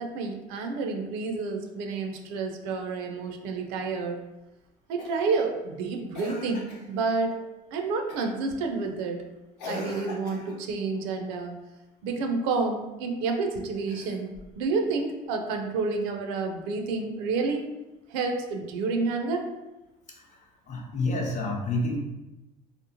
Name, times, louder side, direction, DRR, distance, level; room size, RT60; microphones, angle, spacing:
voice 1, 0.0-4.2 4.9-7.4 7.7-9.2 9.6-11.6 12.0-17.6 18.1-19.4, right 4 dB, 75° right, 4 dB, 0.4 m, -29 dB
Cough, 5.0-5.4 6.1-6.9 8.1-8.4 9.6-10.7 13.8-14.6 16.0-16.1, left 2 dB, 90° left, 0.6 m, -41 dB
voice 2, 20.7-22.0, left 2 dB, 35° left, 0 dB, 0.7 m, -28 dB
2.8 x 2.0 x 2.7 m, 1.0 s
hypercardioid pair, 70°, 20 cm